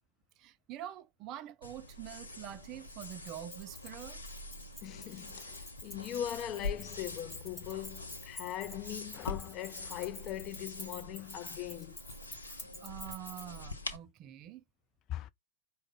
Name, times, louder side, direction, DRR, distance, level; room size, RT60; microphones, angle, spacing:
voice 1, 0.4-4.2 12.5-14.6, right 12 dB, 35° right, 0.4 m, -46 dB
sound 1, 1.6-14.0, left 2 dB, 80° left, 0.6 m, -45 dB
Keys jangling, 3.0-13.6, left 2 dB, 10° left, 1.4 m, -49 dB
voice 2, 4.8-12.0 15.1-15.3, left 12 dB, 35° left, 0.3 m, -40 dB
4.8 x 2.0 x 3.8 m
figure-of-eight pair, 90°, 0 cm